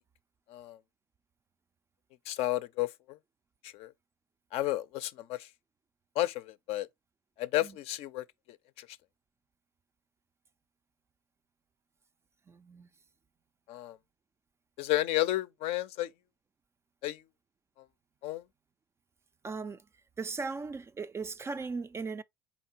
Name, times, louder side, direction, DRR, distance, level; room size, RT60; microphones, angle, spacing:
voice 1, 2.3-3.2 3.6-3.9 4.5-5.5 6.2-6.9 7.4-8.2 8.8-8.9 13.7-14.0 14.8-16.1 17.0-17.2 18.2-18.4, left 16 dB, 55° left, 0.5 m, -32 dB
voice 2, 12.5-12.9 19.4-19.9 20.2-22.2, right 4 dB, 20° right, 0.3 m, -38 dB
4.2 x 3.5 x 2.7 m
hypercardioid pair, 70°, 12 cm